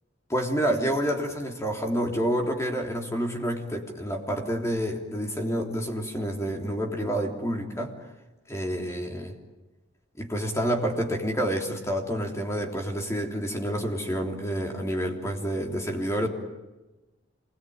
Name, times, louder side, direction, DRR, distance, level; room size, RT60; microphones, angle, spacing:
voice 1, 0.3-7.9 8.5-9.3 10.2-16.3, equal, 15° left, 1 dB, 3.4 m, -28 dB
27.5 x 21.0 x 9.4 m, 1.1 s
head